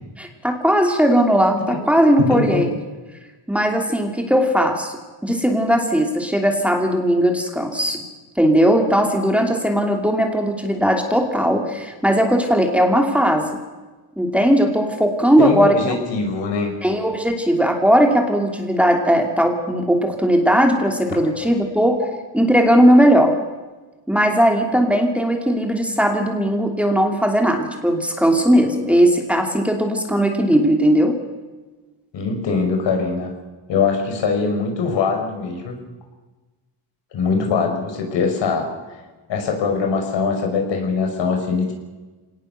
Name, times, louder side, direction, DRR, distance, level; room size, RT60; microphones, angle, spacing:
voice 1, 0.2-2.7 3.5-4.9 5.2-8.0 8.4-13.5 14.2-15.9 16.8-22.0 22.3-23.3 24.1-31.2, equal, 5° right, 3 dB, 2.8 m, -18 dB
voice 2, 2.2-2.6 15.4-16.7 32.1-33.3 33.7-35.7 37.1-38.7 39.3-41.7, left 4 dB, 75° left, 4 dB, 5.4 m, -22 dB
24.5 x 18.5 x 6.8 m, 1.2 s
cardioid pair, 125°, 43 cm